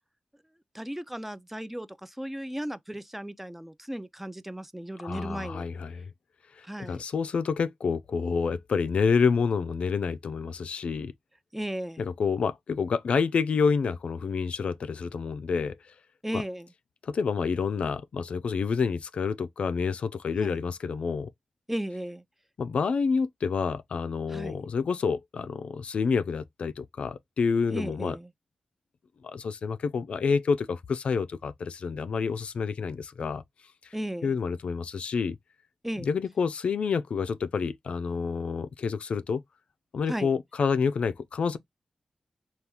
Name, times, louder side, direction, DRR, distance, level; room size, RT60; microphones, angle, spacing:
voice 1, 0.7-5.7 6.6-7.0 11.5-12.1 16.2-16.7 20.4-20.6 21.7-22.2 24.3-24.6 27.7-28.3 33.9-34.4 35.8-36.1 40.1-40.3, right 1 dB, 10° right, 0.4 m, -35 dB
voice 2, 5.0-6.1 6.6-11.1 12.0-15.8 16.3-16.4 17.0-21.3 22.6-28.2 29.2-33.4 34.2-35.4 36.0-39.4 39.9-41.6, left 5 dB, 75° left, 0.3 m, -28 dB
3.3 x 2.3 x 2.8 m
cardioid pair, 45°, 2 cm